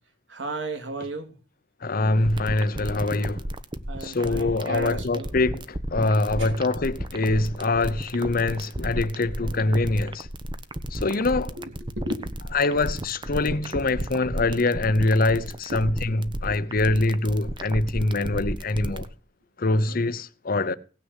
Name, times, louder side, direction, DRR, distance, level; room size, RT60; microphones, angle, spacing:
voice 1, 0.3-1.3 3.9-5.3 6.4-6.5 11.6-12.6 15.7-15.9 17.8-17.9 19.7-20.0, right 2 dB, 85° right, 3.2 m, -34 dB
voice 2, 1.8-3.4 4.0-10.3 10.9-11.6 12.5-19.1 19.6-20.8, left 2 dB, 50° left, 0.8 m, -24 dB
sound 1, 2.2-19.1, right 1 dB, 25° right, 1.1 m, -32 dB
17.5 x 6.5 x 8.1 m
head